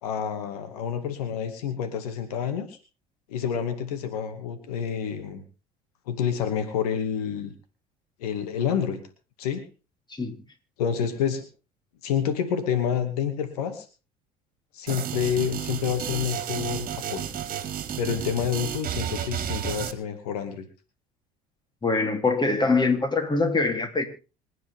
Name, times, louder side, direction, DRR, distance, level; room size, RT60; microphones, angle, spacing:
voice 1, 0.0-2.8 3.3-5.4 6.1-7.5 8.2-9.0 9.4-9.6 10.8-11.5 12.0-13.9 14.7-17.3 18.0-20.7, left 8 dB, 85° left, 9 dB, 2.3 m, -28 dB
sound 1, 14.9-19.9, right 9 dB, 50° right, 2.2 m, -32 dB
voice 2, 21.8-24.1, left 3 dB, 25° left, 6 dB, 3.4 m, -23 dB
26.0 x 9.4 x 3.7 m, 0.34 s
hypercardioid pair, 70°, 19 cm